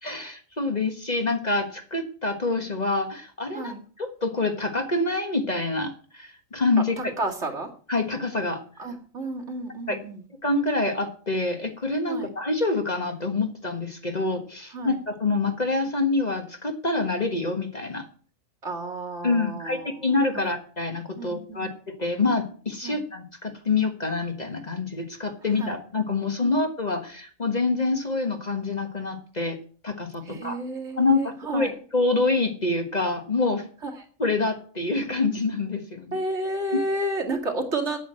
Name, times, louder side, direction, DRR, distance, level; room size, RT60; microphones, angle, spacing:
voice 1, 0.0-7.1 7.9-8.6 9.9-10.0 10.4-18.1 19.2-21.7 22.0-29.6 29.8-30.6 31.0-33.6 34.2-36.2, left 3 dB, 30° left, 6 dB, 1.5 m, -26 dB
voice 2, 7.0-7.7 8.8-10.2 12.1-12.3 14.7-15.0 18.6-20.0 20.3-20.5 21.2-21.7 22.8-23.0 25.6-25.8 30.3-31.7 33.8-33.9 36.1-38.0, right 2 dB, 55° right, 2 dB, 2.5 m, -31 dB
9.0 x 8.2 x 8.6 m, 0.43 s
omnidirectional pair, 1.4 m